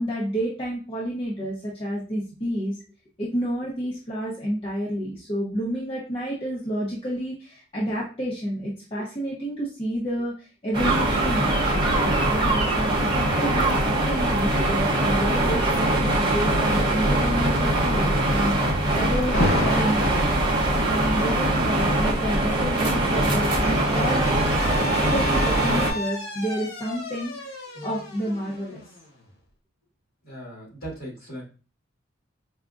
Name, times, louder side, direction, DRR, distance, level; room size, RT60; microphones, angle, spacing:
voice 1, 0.0-2.8 3.2-20.3 20.8-24.3 25.1-27.3 27.8-28.8, equal, 30° left, -6 dB, 0.7 m, -29 dB
sound 1, 10.7-25.9, right 1 dB, 20° right, 0.7 m, -22 dB
Alarm, 19.3-20.3 21.5-29.2, left 1 dB, 70° left, 1.2 m, -32 dB
voice 2, 30.2-31.4, right 1 dB, 50° left, -4 dB, 1.7 m, -38 dB
4.9 x 2.3 x 2.4 m, 0.36 s
head